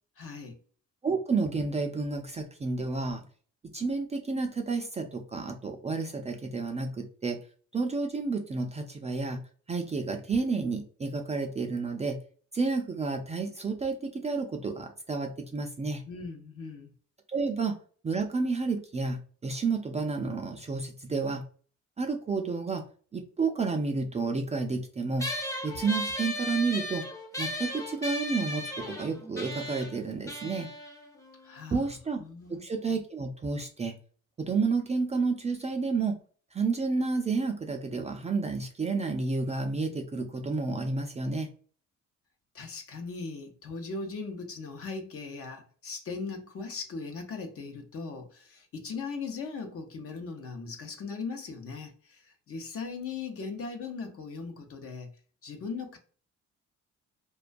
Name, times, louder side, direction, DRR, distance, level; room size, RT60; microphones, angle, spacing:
voice 1, 0.2-0.6 16.1-16.9 31.4-31.8 32.2-32.6 42.5-55.1 55.4-56.0, left 4 dB, 50° left, 0.6 m, -39 dB
voice 2, 1.0-3.2 3.7-7.4 7.7-9.4 9.7-12.2 12.5-16.0 17.3-17.7 18.0-21.5 22.0-22.8 23.1-25.3 25.6-27.1 27.4-30.7 31.7-32.2 32.5-33.9 34.4-36.2 36.5-41.5, right 4 dB, 25° right, 0.3 m, -30 dB
sound 1, 25.2-32.0, left 1 dB, 10° left, 0.6 m, -36 dB
2.2 x 2.2 x 2.5 m
cardioid pair, 90°, 30 cm